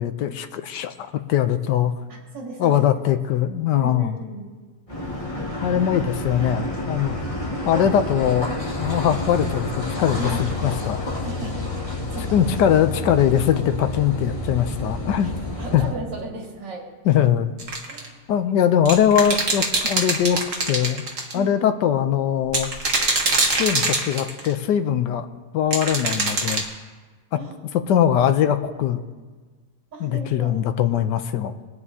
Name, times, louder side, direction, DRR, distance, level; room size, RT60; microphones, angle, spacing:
voice 1, 0.0-1.9 2.6-4.2 5.6-7.2 7.6-8.5 8.8-11.1 12.3-15.3 15.7-15.8 17.0-17.5 18.3-20.4 20.7-21.1 21.3-22.7 23.6-25.3 25.5-26.6 27.3-27.4 27.7-29.1 30.0-31.6, left 10 dB, 80° left, 9 dB, 1.3 m, -21 dB
voice 2, 2.1-2.8 3.7-4.5 5.7-5.9 6.3-6.5 7.7-7.9 10.1-10.4 11.2-12.5 15.6-16.9 17.9-18.5 21.3-21.6 27.3-28.0 29.9-30.5, right 2 dB, 90° right, -4 dB, 3.0 m, -36 dB
Car passing by / Idling / Accelerating revving vroom, 4.9-15.9, left 1 dB, 25° left, 2.4 m, -29 dB
sound 1, 17.6-18.0 18.8-21.3 22.5-24.5 25.7-26.6, right 3 dB, 45° right, 1.8 m, -23 dB
22.0 x 9.6 x 2.8 m, 1.4 s
omnidirectional pair, 1.9 m